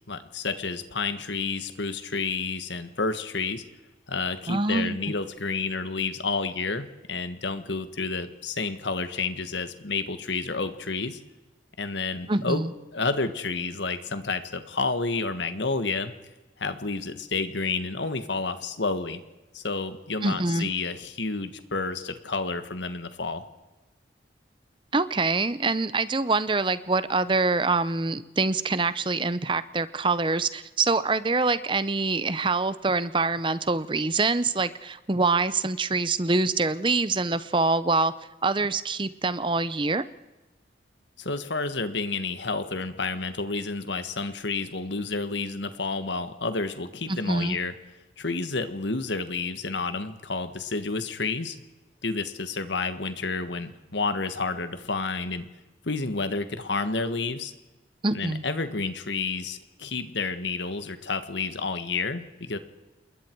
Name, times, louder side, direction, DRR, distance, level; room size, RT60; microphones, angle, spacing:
voice 1, 0.1-3.6 4.1-11.2 11.8-12.6 12.9-16.1 16.6-19.2 19.5-23.4 41.2-47.7 48.2-51.6 52.0-55.4 55.8-57.5 58.1-62.6, left 3 dB, 75° left, 10 dB, 1.6 m, -30 dB
voice 2, 4.5-5.0 12.3-12.7 20.2-20.7 24.9-38.1 38.4-40.0 47.1-47.6 58.0-58.4, right 3 dB, 25° right, 15 dB, 0.7 m, -25 dB
28.0 x 21.5 x 4.7 m, 1.1 s
head